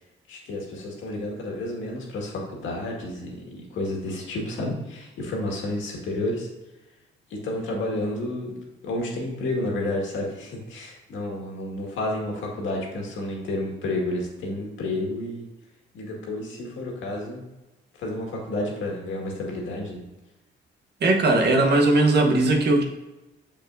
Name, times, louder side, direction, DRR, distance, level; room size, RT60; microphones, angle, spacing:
voice 1, 0.3-6.5 7.3-8.5 8.8-15.5 15.9-17.4 18.0-20.0, left 1 dB, 75° left, -1 dB, 1.9 m, -30 dB
voice 2, 21.0-22.8, right 2 dB, 55° right, 2 dB, 1.1 m, -19 dB
6.7 x 6.0 x 2.6 m, 1.1 s
cardioid pair, 90°, 20 cm